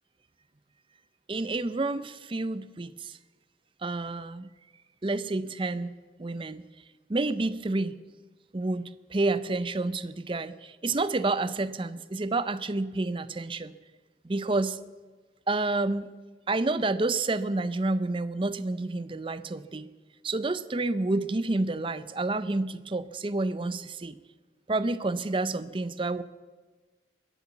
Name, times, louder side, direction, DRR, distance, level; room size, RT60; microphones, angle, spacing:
voice 1, 1.3-3.2 3.8-4.5 5.0-5.9 6.2-6.6 7.1-8.0 8.5-13.7 14.2-14.8 15.5-16.1 16.5-19.9 20.2-24.2 24.7-26.2, right 2 dB, 30° right, 15 dB, 0.5 m, -29 dB
21.5 x 8.1 x 7.1 m, 1.4 s
head